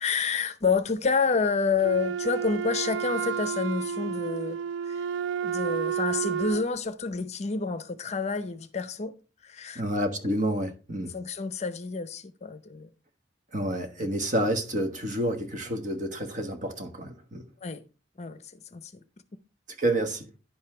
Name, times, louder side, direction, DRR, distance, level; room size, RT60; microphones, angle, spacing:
voice 1, 0.0-4.6 4.8-5.0 5.4-9.1 9.4-9.8 11.1-12.9 17.6-17.8 18.2-18.4 18.7-18.9, left 4 dB, 35° left, 0.7 m, -28 dB
Wind instrument woodwind instrument, 1.8-6.7, right 7 dB, 80° right, 0.4 m, -31 dB
voice 2, 9.7-11.1 13.5-17.5 19.8-20.3, right 1 dB, 45° right, 1.4 m, -29 dB
10.5 x 5.6 x 4.3 m
head